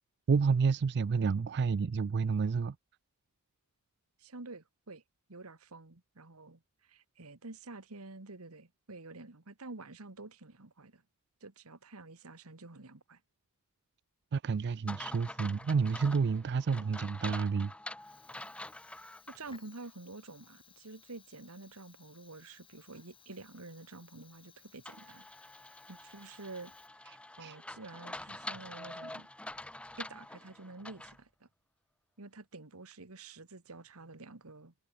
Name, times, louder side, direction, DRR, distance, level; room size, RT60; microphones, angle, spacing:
voice 1, 0.3-2.8 14.3-17.7 27.4-27.6, right 5 dB, 50° right, 0.4 m, -29 dB
voice 2, 4.2-5.0 5.3-11.0 11.4-13.2 19.3-25.3 25.9-26.8 27.4-29.3 30.0-31.5 32.2-34.7, right 3 dB, 90° right, 1.8 m, -49 dB
sound 1, 14.9-19.4 19.8-19.9 24.9-31.2, left 1 dB, 5° left, 0.5 m, -46 dB
Fire, 18.0-27.3, left 7 dB, 25° left, 3.7 m, -62 dB
head